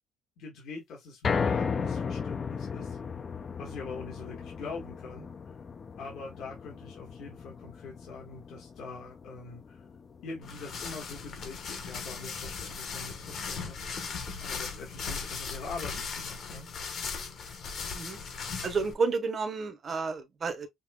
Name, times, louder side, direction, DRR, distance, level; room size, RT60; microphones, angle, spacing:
voice 1, 0.4-3.0 3.6-5.5 6.0-9.9 10.2-14.1 14.4-16.7, left 4 dB, 60° left, 1.3 m, -43 dB
sound 1, 1.2-13.5 13.9-14.0 14.4-14.5, left 6 dB, 25° left, 0.3 m, -36 dB
sound 2, 10.4-18.9, left 5 dB, 45° left, 1.0 m, -38 dB
voice 2, 18.6-20.7, right 4 dB, 30° right, 0.7 m, -31 dB
5.2 x 2.7 x 2.2 m
cardioid pair, 170°, 0 cm